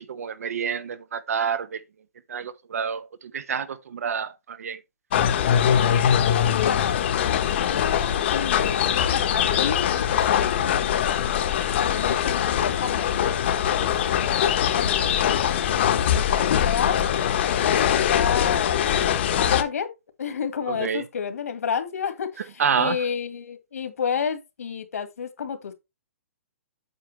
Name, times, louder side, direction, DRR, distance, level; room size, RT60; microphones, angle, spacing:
voice 1, 0.0-1.8 2.3-4.8 20.7-21.0 22.6-23.0, right 7 dB, 75° right, 1.0 m, -28 dB
sound 1, 5.1-19.6, left 9 dB, 45° left, 1.0 m, -22 dB
voice 2, 5.7-7.0 7.5-11.5 11.9-17.0 17.5-19.9 20.2-25.7, left 7 dB, 75° left, 1.8 m, -31 dB
8.2 x 5.9 x 3.3 m
hypercardioid pair, 160°, 8 cm